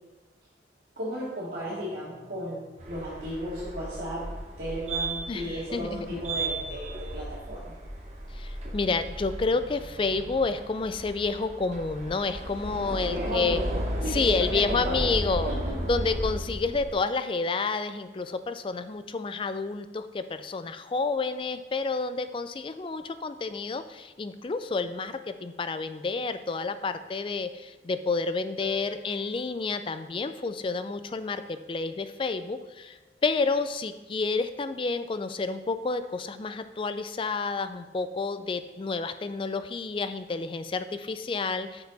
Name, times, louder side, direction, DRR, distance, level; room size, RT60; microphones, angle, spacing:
voice 1, 1.0-7.7 12.7-13.8 14.0-15.2 15.4-15.7, equal, 60° right, -10 dB, 2.1 m, -35 dB
sound 1, 1.5-3.6 5.2-7.3 8.9-10.9, left 1 dB, 75° left, 1.4 m, -56 dB
sound 2, 2.8-16.9, right 1 dB, 40° right, 1.0 m, -35 dB
voice 2, 5.7-6.2 8.3-13.6 14.1-15.5 15.9-41.8, left 4 dB, 30° left, 11 dB, 0.3 m, -30 dB
Piano, 28.6-34.0 34.2-34.3 34.5-34.7 35.0-35.1 35.9-36.0, left 6 dB, 5° right, 2.7 m, -51 dB
6.8 x 6.5 x 4.1 m, 1.1 s
head